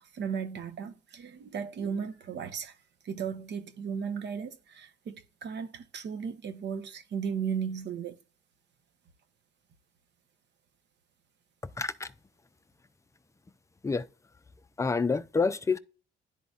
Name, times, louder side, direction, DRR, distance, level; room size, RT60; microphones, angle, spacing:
voice 1, 0.0-2.7 3.0-8.2, right 7 dB, 60° right, 1.0 m, -35 dB
voice 2, 11.8-12.1 13.8-14.1 14.8-15.8, left 4 dB, 15° left, 0.4 m, -28 dB
11.0 x 3.9 x 2.4 m
cardioid pair, 90°, 20 cm